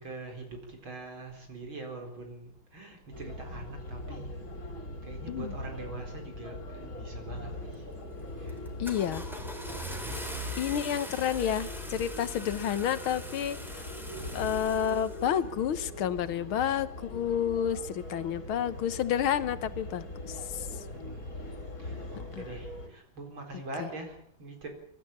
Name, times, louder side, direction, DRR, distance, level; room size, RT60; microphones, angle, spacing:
voice 1, 0.0-4.7 5.0-8.0 8.4-8.7 9.3-10.5 20.8-24.7, right 2 dB, 75° right, 4 dB, 5.0 m, -44 dB
sound 1, 3.1-22.9, left 1 dB, 45° left, 3.3 m, -41 dB
Car / Engine starting, 7.7-8.0 8.5-15.5, equal, ahead, 3.0 m, -41 dB
voice 2, 8.8-9.2 10.6-13.9 14.3-20.7 22.4-22.5, left 9 dB, 90° left, 14 dB, 1.9 m, -30 dB
23.5 x 13.0 x 8.8 m, 0.71 s
omnidirectional pair, 2.2 m